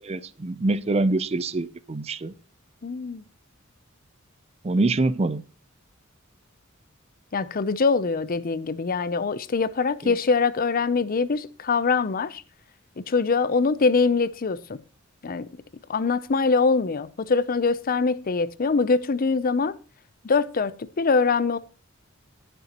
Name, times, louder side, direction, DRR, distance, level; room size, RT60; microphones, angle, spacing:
voice 1, 0.0-2.3 4.6-5.4 10.0-10.1, right 2 dB, 30° right, 0.5 m, -25 dB
voice 2, 2.8-3.2 7.3-12.4 13.1-14.8 15.2-15.5 15.9-19.7 20.2-21.6, left 4 dB, 45° left, 0.5 m, -23 dB
19.5 x 6.8 x 2.9 m
head